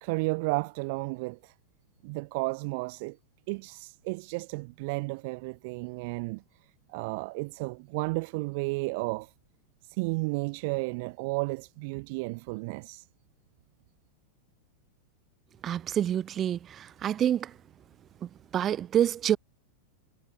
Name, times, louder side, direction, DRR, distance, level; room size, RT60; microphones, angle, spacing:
voice 1, 0.0-1.5 2.0-3.2 3.5-6.4 6.9-9.3 9.8-13.1, right 28 dB, 45° right, 0.5 m, -33 dB
voice 2, 15.6-17.6 18.2-19.4, right 10 dB, 25° right, 1.1 m, -28 dB
figure-of-eight pair, 90°, 0 cm